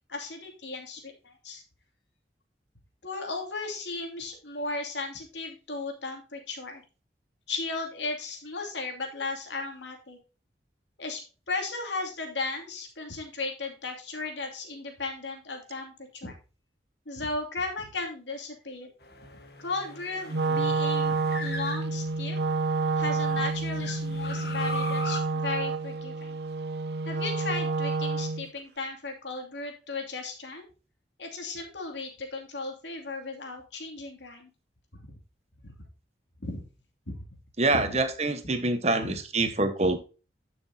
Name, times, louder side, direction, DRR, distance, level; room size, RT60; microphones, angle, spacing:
voice 1, 0.1-1.6 3.0-6.8 7.5-10.2 11.0-11.2 11.5-16.4 17.1-18.9 19.6-22.4 23.0-26.4 27.0-30.6 31.2-34.5 34.9-35.1 35.6-35.7 36.4-36.6 37.1-37.2 37.7-37.9 39.0-39.2, left 3 dB, 85° left, 2.7 m, -36 dB
sound 1, 19.0-22.5 23.0-25.2, left 2 dB, 60° left, 1.5 m, -40 dB
Wind instrument woodwind instrument, 20.3-28.5, right 3 dB, 65° right, 0.6 m, -29 dB
voice 2, 37.6-40.0, right 2 dB, 35° right, 1.2 m, -25 dB
11.5 x 6.2 x 2.8 m
head